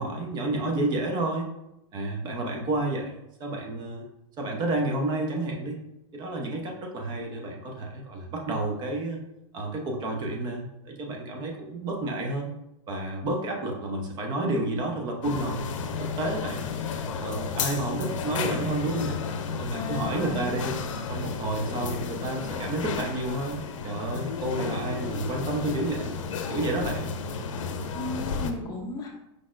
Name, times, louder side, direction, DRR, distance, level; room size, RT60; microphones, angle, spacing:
voice 1, 0.0-1.5 1.9-4.0 4.4-5.8 6.1-9.2 9.5-12.5 12.9-15.6 16.0-16.6 17.2-19.2 19.5-20.8 21.1-23.6 23.8-26.1 26.5-27.1, right 2 dB, 25° right, 1 dB, 0.7 m, -30 dB
sound 1, 15.2-28.5, left 5 dB, 80° left, 0.6 m, -32 dB
voice 2, 19.7-20.6 27.9-29.1, left 2 dB, 25° left, 1 dB, 0.7 m, -34 dB
4.8 x 4.2 x 2.5 m, 0.87 s
supercardioid pair, 140°, 16 cm